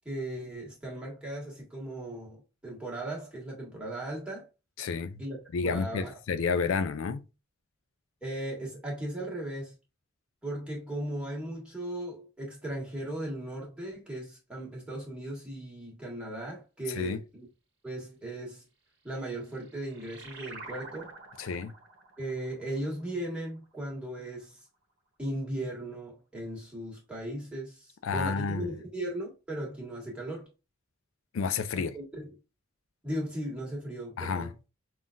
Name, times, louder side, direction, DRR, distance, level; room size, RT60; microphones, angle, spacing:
voice 1, 0.0-4.5 5.2-5.4 5.6-6.2 8.2-9.7 10.4-17.5 17.8-18.6 19.0-21.1 22.2-24.6 25.2-30.5 31.7-32.3 33.0-34.5, right 1 dB, 5° right, 1.5 m, -37 dB
voice 2, 4.8-5.2 5.5-7.2 17.0-17.2 21.4-21.7 28.0-28.7 31.3-31.9 34.2-34.5, left 5 dB, 80° left, 0.4 m, -30 dB
sound 1, 19.2-24.2, right 3 dB, 55° right, 0.9 m, -49 dB
5.6 x 2.4 x 2.5 m
head